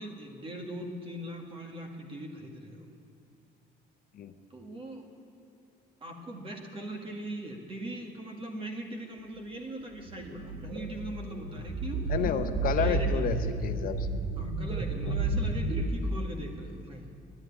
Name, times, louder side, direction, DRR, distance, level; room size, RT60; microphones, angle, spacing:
voice 1, 0.0-2.9 4.5-5.1 6.0-12.1 12.8-13.3 14.4-17.1, right 1 dB, 30° right, 2 dB, 2.0 m, -40 dB
sound 1, 10.1-15.8, right 3 dB, 50° right, 2.0 m, -31 dB
voice 2, 12.1-13.3 13.6-14.1 15.1-15.3, left 8 dB, 55° left, 9 dB, 0.7 m, -31 dB
11.0 x 9.7 x 9.9 m, 2.4 s
cardioid pair, 110°, 17 cm